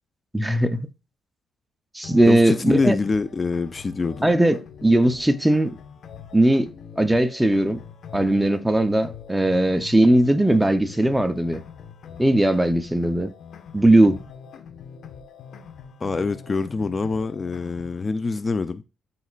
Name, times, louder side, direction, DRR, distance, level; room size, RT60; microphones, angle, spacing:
voice 1, 0.3-0.8 1.9-2.9 4.2-5.7 6.3-6.7 7.0-7.8 8.1-11.6 12.2-13.3 13.7-14.2, right 1 dB, 10° right, 0.7 m, -19 dB
sound 1, 2.0-18.0, left 7 dB, 65° left, 1.2 m, -43 dB
voice 2, 2.3-4.3 16.0-18.8, left 4 dB, 30° left, 0.5 m, -25 dB
12.5 x 4.2 x 2.4 m
cardioid pair, 90°, 0 cm